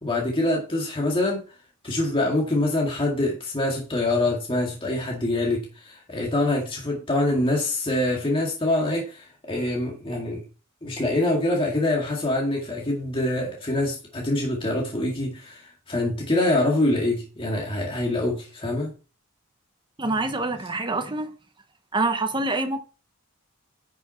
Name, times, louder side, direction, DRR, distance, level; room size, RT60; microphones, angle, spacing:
voice 1, 0.0-1.4 1.8-10.4 10.8-18.9, left 1 dB, 25° left, 2.1 m, -25 dB
voice 2, 20.0-21.3 21.9-22.8, right 2 dB, 20° right, 1.1 m, -26 dB
9.9 x 6.1 x 4.5 m
head